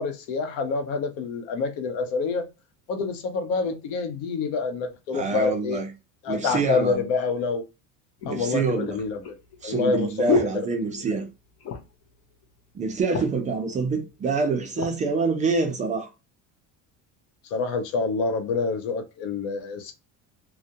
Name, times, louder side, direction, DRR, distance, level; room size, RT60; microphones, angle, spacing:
voice 1, 0.0-2.5 2.9-5.8 6.2-7.6 8.3-9.4 9.6-10.7 10.9-11.2 17.5-19.9, left 4 dB, 85° left, 0.8 m, -27 dB
voice 2, 5.1-5.9 6.3-7.0 8.3-9.0 9.6-11.3 12.7-16.1, right 4 dB, 20° right, 0.3 m, -26 dB
sound 1, 7.3-7.4 8.2-11.3 11.6-12.1 12.4-12.5 12.8-13.5 14.2-15.0 15.6-15.8, left 4 dB, 45° left, 0.6 m, -30 dB
2.3 x 2.1 x 2.6 m
cardioid pair, 150°, 35 cm